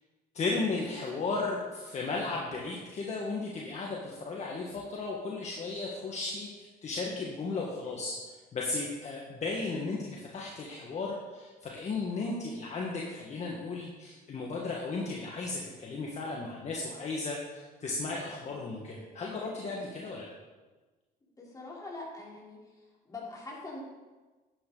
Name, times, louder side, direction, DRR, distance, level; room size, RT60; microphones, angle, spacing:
voice 1, 0.3-20.3, left 3 dB, 40° left, -2 dB, 1.7 m, -35 dB
voice 2, 21.4-22.6 23.1-23.8, left 2 dB, 20° left, -5 dB, 3.9 m, -43 dB
11.5 x 9.3 x 4.1 m, 1.3 s
cardioid pair, 110°, 17 cm